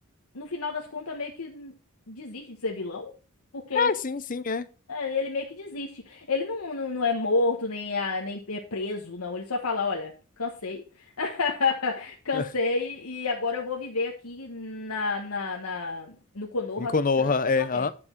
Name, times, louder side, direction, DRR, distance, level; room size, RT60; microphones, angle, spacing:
voice 1, 0.3-1.7 2.1-3.1 3.5-3.9 4.9-10.1 10.4-10.8 11.2-16.9 17.6-17.9, left 4 dB, 80° left, 1.3 m, -30 dB
voice 2, 3.7-4.7 12.3-12.5 16.8-17.9, left 4 dB, 40° left, 0.6 m, -25 dB
9.7 x 6.2 x 4.5 m
head